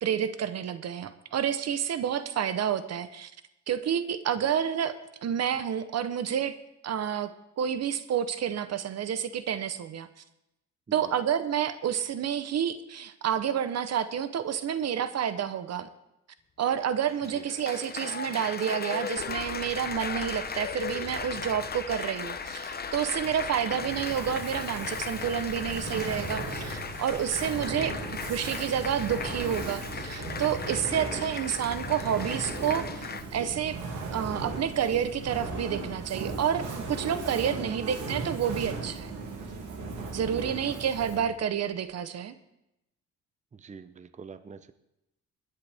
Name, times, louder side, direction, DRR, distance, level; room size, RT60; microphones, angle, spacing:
voice 1, 0.0-3.3 3.7-4.9 5.2-6.5 6.8-7.3 7.6-10.1 10.9-15.9 16.6-28.0 28.3-33.8 34.1-39.1 40.1-42.3, right 9 dB, 60° right, 12 dB, 0.9 m, -29 dB
Applause, 17.0-33.2, left 6 dB, 30° left, 0.8 m, -37 dB
sound 1, 19.2-30.4, left 5 dB, 85° left, 2.4 m, -49 dB
Fire, 23.4-41.4, right 3 dB, 80° right, 2.5 m, -37 dB
voice 2, 30.9-31.2 37.7-38.1 40.2-40.8 43.5-44.7, right 6 dB, 25° right, 12 dB, 0.7 m, -46 dB
21.0 x 10.0 x 3.5 m, 0.87 s
cardioid pair, 90°, 30 cm